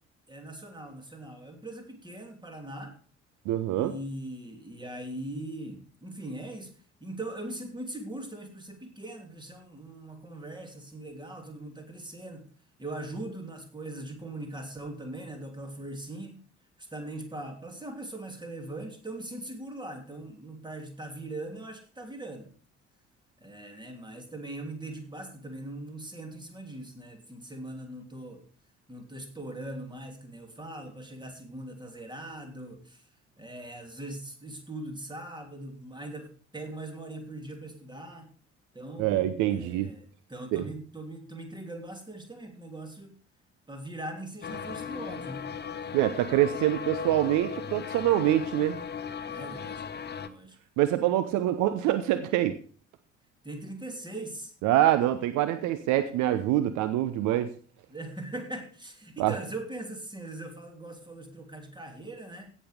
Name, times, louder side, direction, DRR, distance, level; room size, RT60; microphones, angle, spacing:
voice 1, 0.3-3.0 3.7-6.7 7.0-12.5 12.8-16.4 16.8-22.5 23.4-28.4 28.9-33.0 33.4-38.3 38.7-43.2 43.7-45.5 49.3-49.8 50.1-50.6 53.4-54.5 57.9-62.5, right 1 dB, 10° right, 5 dB, 3.0 m, -40 dB
voice 2, 3.5-3.9 39.0-39.9 40.5-40.6 45.9-48.8 50.8-52.6 54.6-57.5 59.2-59.3, right 13 dB, 55° right, 12 dB, 0.8 m, -25 dB
sound 1, 44.4-50.3, left 7 dB, 30° left, 0.9 m, -37 dB
16.5 x 6.4 x 5.0 m, 0.43 s
figure-of-eight pair, 50°, 35 cm